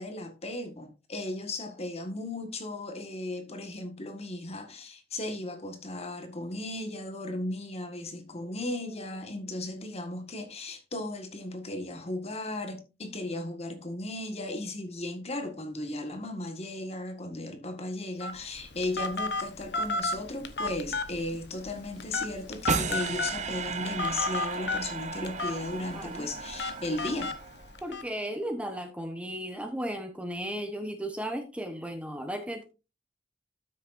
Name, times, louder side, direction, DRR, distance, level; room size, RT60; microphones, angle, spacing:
voice 1, 0.0-27.3, left 2 dB, 35° left, 1.6 m, -36 dB
Telephone, 18.2-28.0, left 2 dB, 70° left, 0.9 m, -34 dB
sound 1, 20.4-27.3, equal, 25° right, 4.9 m, -53 dB
sound 2, 22.7-27.9, right 5 dB, 40° right, 0.7 m, -35 dB
voice 2, 25.9-26.3 27.8-32.6, equal, 5° right, 1.0 m, -35 dB
13.0 x 6.6 x 2.6 m
head